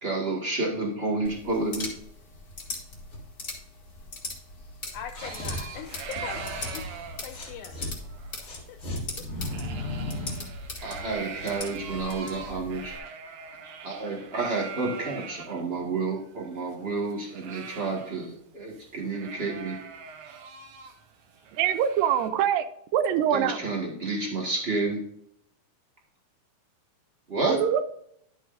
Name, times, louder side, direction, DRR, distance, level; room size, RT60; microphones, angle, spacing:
voice 1, 0.0-1.9 10.8-13.0 13.8-19.8 23.3-25.0 27.3-27.6, right 3 dB, 35° right, -2 dB, 1.0 m, -30 dB
sound 1, 1.2-13.0, left 2 dB, 35° left, 1.8 m, -40 dB
voice 2, 4.9-6.9 7.2-7.8 8.7-8.8, left 9 dB, 85° left, 8 dB, 1.7 m, -40 dB
sound 2, 5.1-7.9 8.4-10.5, left 1 dB, 50° left, 0.8 m, -36 dB
sound 3, 5.2-15.6 16.0-16.1 16.3-18.4 18.7-18.9 19.1-22.3, right 6 dB, 70° right, 2.4 m, -42 dB
voice 3, 21.6-22.7 22.9-23.6 27.5-27.8, right 9 dB, 90° right, 11 dB, 2.4 m, -24 dB
11.0 x 8.1 x 2.5 m, 0.73 s
omnidirectional pair, 3.9 m